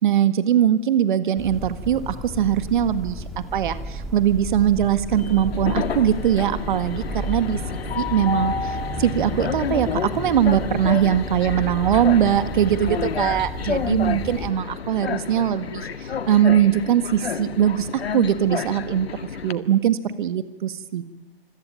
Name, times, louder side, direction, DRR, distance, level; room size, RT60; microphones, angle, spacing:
voice 1, 0.0-3.2 3.5-21.0, right 10 dB, 50° right, 12 dB, 1.8 m, -21 dB
sound 1, 1.4-14.5, equal, ahead, 1.7 m, -33 dB
Train, 5.1-19.5, left 6 dB, 70° left, 1.9 m, -30 dB
25.5 x 24.5 x 9.0 m, 1.0 s
hypercardioid pair, 140°, 32 cm